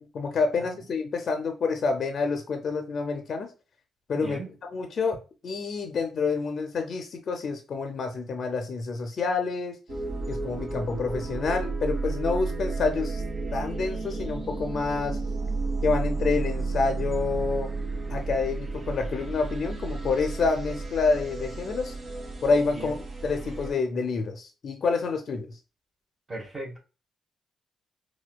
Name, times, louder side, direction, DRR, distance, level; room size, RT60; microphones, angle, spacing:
voice 1, 0.0-3.5 4.1-4.4 4.7-5.2 5.4-9.8 10.3-13.2 13.5-15.2 15.8-17.7 18.1-21.9 22.4-23.0 23.2-25.6, left 4 dB, 55° left, 0.5 m, -28 dB
voice 2, 4.1-4.5 22.7-22.9 26.3-26.8, right 2 dB, 25° right, 1.1 m, -37 dB
sound 1, 9.9-23.7, right 3 dB, 55° right, 1.1 m, -32 dB
4.2 x 2.3 x 2.2 m
cardioid pair, 95°, 0 cm